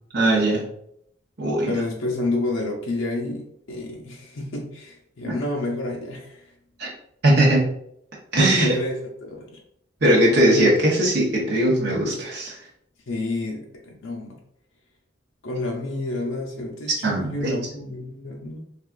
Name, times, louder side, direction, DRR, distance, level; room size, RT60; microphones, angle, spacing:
voice 1, 0.1-0.6 1.4-1.7 5.2-5.4 6.8-6.9 7.2-7.7 8.3-8.8 10.0-12.6 17.0-17.5, right 1 dB, 55° right, -4 dB, 0.8 m, -19 dB
voice 2, 1.7-6.5 8.6-9.5 13.1-14.4 15.4-18.6, left 2 dB, 75° left, -1 dB, 0.5 m, -29 dB
3.4 x 2.4 x 2.3 m, 0.72 s
head